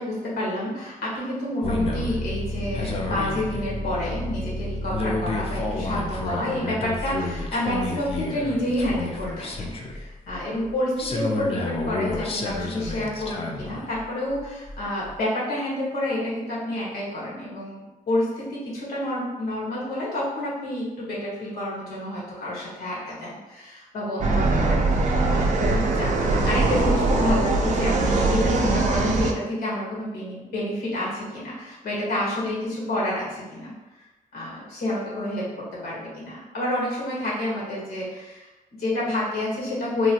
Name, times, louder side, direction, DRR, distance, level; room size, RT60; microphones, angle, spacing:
voice 1, 0.0-33.7 34.3-35.5 35.7-40.1, left 1 dB, 90° left, -6 dB, 1.2 m, -29 dB
sound 1, 1.6-10.7 11.0-14.0 14.3-15.1, left 2 dB, 40° left, 0.4 m, -30 dB
sound 2, 24.2-29.3, right 3 dB, 55° right, 0.4 m, -21 dB
3.0 x 2.3 x 2.8 m, 1.1 s
cardioid pair, 100°, 15 cm